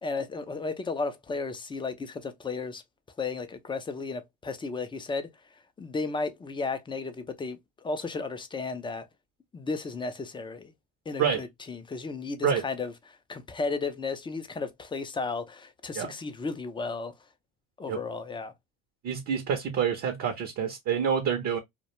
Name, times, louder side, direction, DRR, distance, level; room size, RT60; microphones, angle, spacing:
voice 1, 0.0-2.8 3.2-5.3 5.8-9.1 9.5-10.7 11.1-17.1 17.8-18.5, left 4 dB, 15° left, 0.3 m, -34 dB
voice 2, 19.0-21.6, right 7 dB, 45° right, 0.6 m, -27 dB
2.3 x 2.1 x 2.8 m
supercardioid pair, 95°, 36 cm